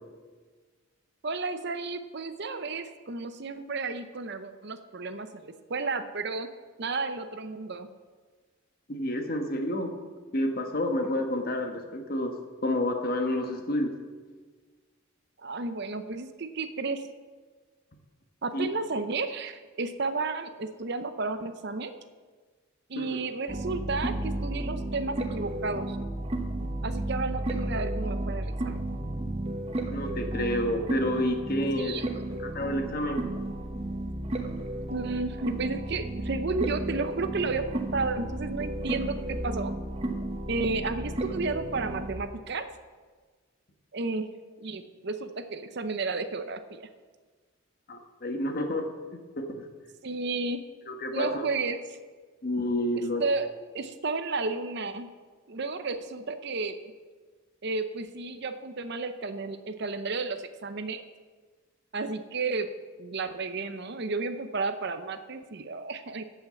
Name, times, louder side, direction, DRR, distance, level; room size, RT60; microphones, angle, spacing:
voice 1, 1.2-6.5 6.8-7.9 15.4-17.1 18.4-21.9 22.9-26.0 26.8-28.8 31.8-32.1 34.9-39.7 40.5-42.7 43.9-44.3 44.6-46.9 50.0-50.6 51.1-51.8 52.9-53.5 53.7-55.1 55.5-56.8 57.6-61.0 61.9-62.7 63.0-66.2, right 3 dB, 50° right, 9 dB, 0.7 m, -32 dB
voice 2, 8.9-9.9 10.3-12.3 12.6-13.9 18.5-18.7 23.0-23.2 29.9-32.0 32.4-33.2 47.9-48.9 49.4-49.5 50.9-51.4 52.4-53.2, left 1 dB, 45° left, 4 dB, 1.3 m, -29 dB
sound 1, 23.5-42.2, right 1 dB, 30° right, 0.9 m, -33 dB
14.5 x 5.7 x 7.0 m, 1.5 s
head